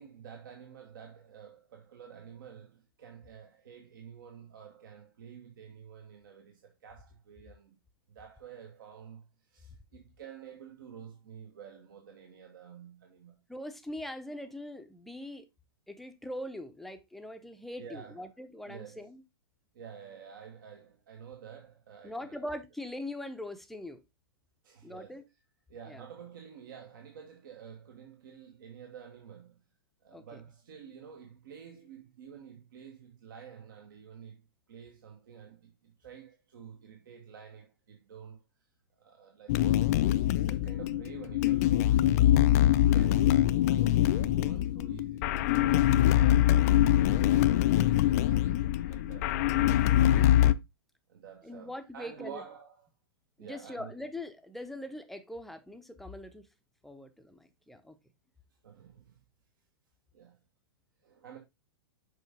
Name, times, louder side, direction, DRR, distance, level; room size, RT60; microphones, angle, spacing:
voice 1, 0.0-7.8 8.1-13.4 17.8-18.3 18.6-19.1 19.7-22.5 24.6-25.3 25.7-29.6 30.0-34.4 34.7-38.4 39.0-39.7 40.0-49.3 51.1-52.9 53.4-53.9 58.6-59.2 60.1-60.4 61.0-61.4, right 7 dB, 55° right, 1.3 m, -50 dB
voice 2, 13.5-15.4 15.9-19.2 22.0-24.0 24.8-25.2 25.9-26.0 30.1-30.4 51.4-52.4 53.4-56.5 56.8-58.0, left 1 dB, ahead, 0.7 m, -42 dB
sound 1, 39.5-50.5, left 13 dB, 40° left, 0.4 m, -24 dB
6.5 x 5.1 x 3.5 m
figure-of-eight pair, 105°, 13 cm